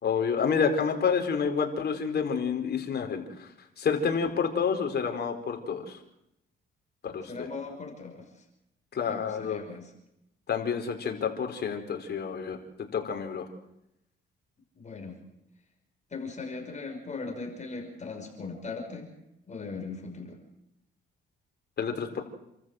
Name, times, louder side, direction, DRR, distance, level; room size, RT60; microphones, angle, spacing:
voice 1, 0.0-3.5 3.8-6.0 7.0-7.3 8.9-9.6 10.5-13.5 21.8-22.2, left 6 dB, 55° left, 4 dB, 4.3 m, -29 dB
voice 2, 7.3-8.4 9.1-9.9 14.8-15.2 16.1-19.1 19.5-20.4, left 4 dB, 35° left, 3 dB, 5.8 m, -39 dB
28.5 x 14.0 x 7.8 m, 0.84 s
cardioid pair, 90°, 20 cm